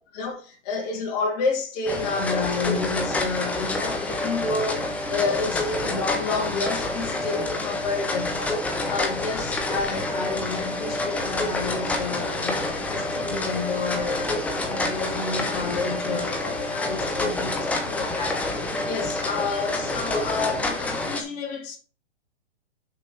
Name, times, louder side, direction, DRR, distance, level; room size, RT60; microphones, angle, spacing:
voice 1, 0.1-8.6 8.9-18.5 18.8-21.8, left 4 dB, 35° left, 2.9 m, -30 dB
sound 1, 1.9-21.2, left 2 dB, 5° left, 0.7 m, -28 dB
6.6 x 5.8 x 5.5 m
hypercardioid pair, 155°, 35 cm